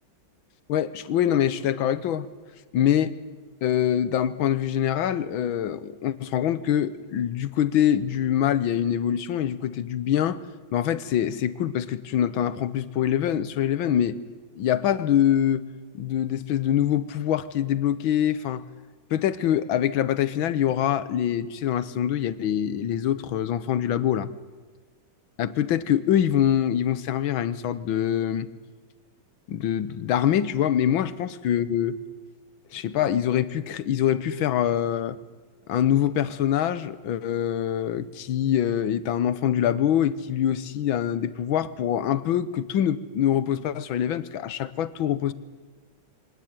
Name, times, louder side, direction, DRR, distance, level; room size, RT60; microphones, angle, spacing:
voice 1, 0.7-2.3 2.7-3.1 3.6-10.4 10.7-14.2 14.6-15.6 15.9-18.6 19.1-24.3 25.4-28.5 29.5-32.0 32.7-35.2 35.7-45.3, left 10 dB, 85° left, 15 dB, 1.7 m, -24 dB
24.5 x 17.5 x 9.6 m, 1.4 s
omnidirectional pair, 2.1 m